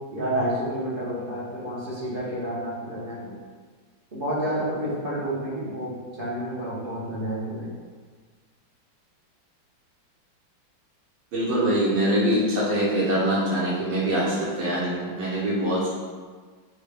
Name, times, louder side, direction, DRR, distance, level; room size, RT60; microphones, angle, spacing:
voice 1, 0.1-3.4 4.1-7.7, right 1 dB, 45° right, -8 dB, 0.7 m, -30 dB
voice 2, 11.3-15.9, right 1 dB, 75° right, -6 dB, 1.5 m, -24 dB
6.5 x 2.2 x 3.3 m, 1.5 s
omnidirectional pair, 2.2 m